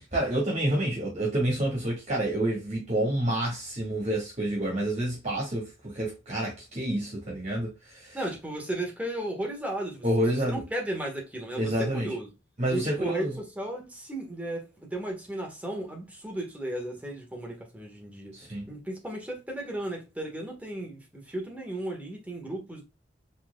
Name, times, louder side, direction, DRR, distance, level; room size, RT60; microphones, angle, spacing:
voice 1, 0.0-8.2 10.0-10.6 11.6-12.1 12.6-13.3 18.3-18.6, right 1 dB, 40° right, 1.9 m, -28 dB
voice 2, 8.1-10.0 10.3-12.3 12.7-18.3 18.7-22.8, right 1 dB, 10° right, 1.4 m, -35 dB
4.4 x 3.9 x 2.2 m
head